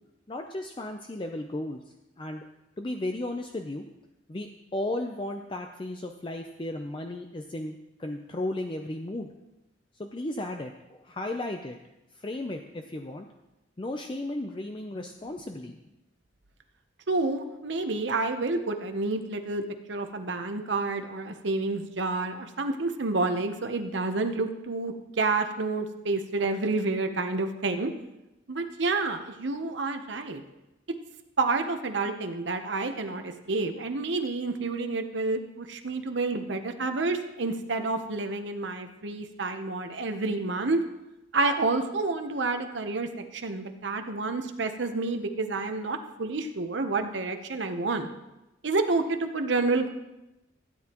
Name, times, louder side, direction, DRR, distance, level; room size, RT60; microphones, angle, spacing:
voice 1, 0.3-1.8 2.2-2.4 2.8-3.8 4.3-9.3 10.0-11.8 12.2-13.3 13.8-15.8 42.6-42.7, left 1 dB, 25° left, 4 dB, 0.5 m, -35 dB
voice 2, 17.1-19.6 19.9-27.9 28.5-30.4 31.4-40.8 41.3-48.1 48.6-49.9, right 3 dB, 70° right, 6 dB, 0.9 m, -29 dB
16.0 x 9.7 x 3.0 m, 0.97 s
head